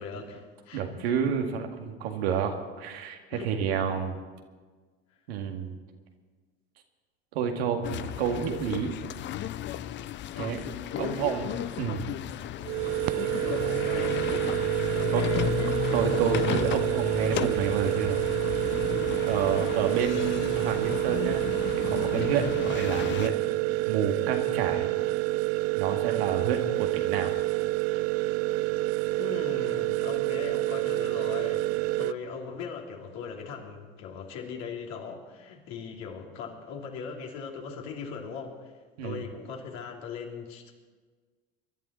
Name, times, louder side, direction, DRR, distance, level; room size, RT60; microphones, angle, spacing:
voice 1, 0.0-1.1 2.2-2.3 3.3-4.1 10.9-11.4 13.4-16.1 29.2-31.7 32.0-38.7 39.0-40.7, left 5 dB, 60° left, 1 dB, 3.1 m, -39 dB
voice 2, 0.7-4.1 5.3-5.8 7.3-8.9 10.4-10.6 11.0-12.1 14.6-14.7 15.1-15.2 15.9-18.2 19.2-21.5 21.7-23.4 23.9-24.9 25.7-27.3 39.0-39.2, right 7 dB, 70° right, 3 dB, 2.1 m, -29 dB
sound 1, 7.8-23.3, left 12 dB, 35° left, 0.6 m, -34 dB
sound 2, 12.6-32.1, right 20 dB, 50° right, 0.5 m, -28 dB
24.0 x 11.5 x 4.4 m, 1.4 s
hypercardioid pair, 80°, 32 cm